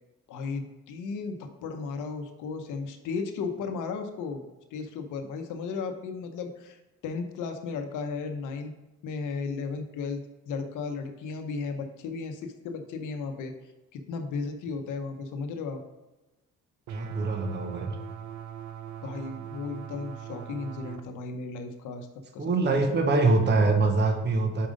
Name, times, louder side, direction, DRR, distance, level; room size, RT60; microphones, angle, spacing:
voice 1, 0.3-4.4 4.7-8.7 9.0-13.5 13.9-15.8 19.0-22.1 22.3-22.8, left 4 dB, 85° left, 6 dB, 0.9 m, -35 dB
voice 2, 16.9-18.0 22.4-24.7, right 3 dB, 35° right, 4 dB, 1.0 m, -24 dB
sound 1, 16.9-21.0, right 10 dB, 70° right, 0.6 m, -41 dB
5.2 x 4.8 x 5.0 m, 1.0 s
cardioid pair, 90°, 30 cm